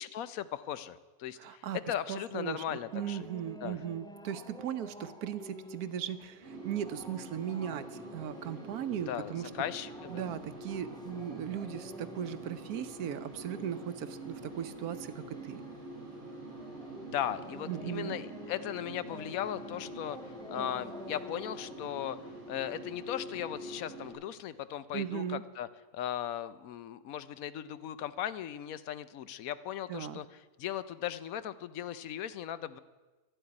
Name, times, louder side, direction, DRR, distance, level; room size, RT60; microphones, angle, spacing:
voice 1, 0.0-3.3 3.6-3.8 9.1-10.3 17.1-20.2 20.5-22.2 22.5-25.7 25.9-30.2 30.6-32.8, left 11 dB, 75° left, 15 dB, 1.0 m, -37 dB
voice 2, 1.4-9.5 10.1-15.6 17.7-18.2 24.9-25.4 29.9-30.2, right 9 dB, 85° right, 12 dB, 1.3 m, -38 dB
sound 1, 2.8-21.9, equal, 5° left, 0.5 m, -51 dB
sound 2, 6.4-24.1, right 1 dB, 25° left, 6.2 m, -46 dB
12.0 x 7.9 x 9.6 m, 1.2 s
omnidirectional pair, 1.6 m